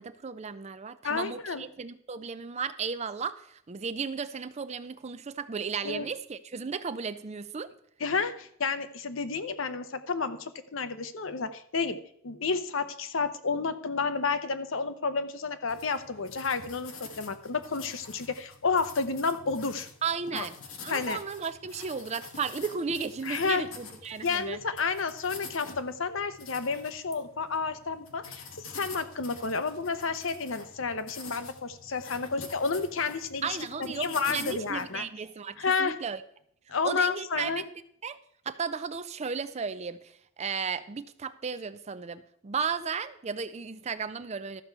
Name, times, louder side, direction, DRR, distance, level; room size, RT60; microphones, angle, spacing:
voice 1, 0.0-3.4 3.7-7.7 20.0-20.5 20.8-24.6 33.4-36.2 36.8-37.6 38.0-38.2 38.5-40.0 40.4-44.6, right 5 dB, 30° right, 13 dB, 0.5 m, -34 dB
voice 2, 1.0-1.6 5.8-6.1 8.0-19.9 20.3-20.5 20.9-21.2 23.2-23.7 24.2-35.0 35.6-36.0 36.7-37.6, left 4 dB, 65° left, 11 dB, 0.7 m, -31 dB
sound 1, 15.7-34.9, left 5 dB, 80° left, 1.3 m, -47 dB
12.5 x 4.6 x 6.7 m, 0.68 s
head